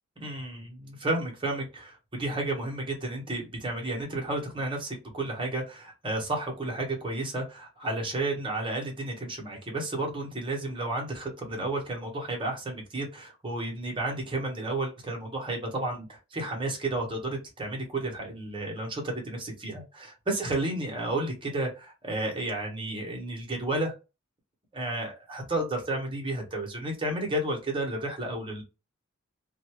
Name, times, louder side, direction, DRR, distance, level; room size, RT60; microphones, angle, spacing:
voice 1, 0.2-23.9 24.7-28.6, right 2 dB, 25° right, 0 dB, 1.0 m, -32 dB
2.5 x 2.3 x 2.9 m, 0.28 s
head